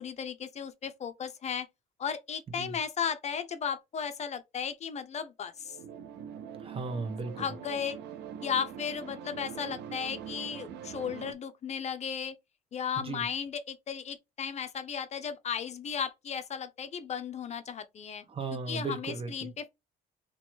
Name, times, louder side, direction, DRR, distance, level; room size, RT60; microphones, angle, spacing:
voice 1, 0.0-1.7 2.0-5.8 7.4-8.0 8.4-12.3 12.7-18.2 18.7-19.7, left 7 dB, 40° left, 0.6 m, -35 dB
sound 1, 5.6-11.3, right 8 dB, 80° right, 0.6 m, -43 dB
voice 2, 6.6-7.5 13.0-13.2 18.3-19.5, right 4 dB, 35° right, 1.2 m, -36 dB
3.0 x 3.0 x 4.4 m
cardioid pair, 110°, 17 cm